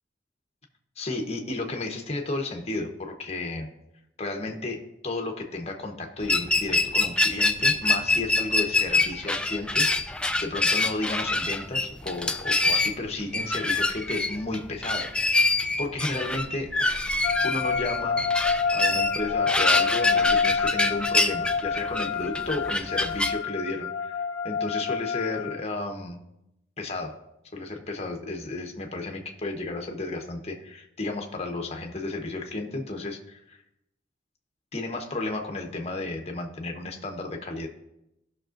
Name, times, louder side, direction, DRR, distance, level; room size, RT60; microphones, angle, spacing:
voice 1, 1.0-3.7 4.2-18.2 18.7-26.2 26.8-27.1 27.5-33.6 34.7-37.7, left 2 dB, 35° left, 3 dB, 1.0 m, -33 dB
sound 1, 6.2-23.3, left 2 dB, 5° left, 0.3 m, -25 dB
sound 2, 17.2-25.6, left 6 dB, 90° left, 0.7 m, -28 dB
16.0 x 6.0 x 2.5 m, 0.87 s
head